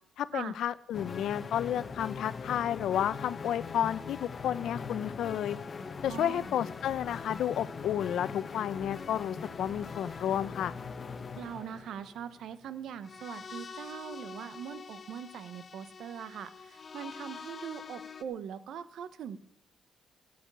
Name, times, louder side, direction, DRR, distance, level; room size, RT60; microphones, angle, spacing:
voice 1, 0.2-5.6 6.0-10.7, left 10 dB, 75° left, 15 dB, 0.7 m, -31 dB
sound 1, 0.9-18.2, left 5 dB, 40° left, 1.1 m, -42 dB
voice 2, 6.1-6.5 11.3-19.4, right 8 dB, 75° right, 14 dB, 1.0 m, -41 dB
14.0 x 7.9 x 8.3 m, 0.70 s
cardioid pair, 90°, 0 cm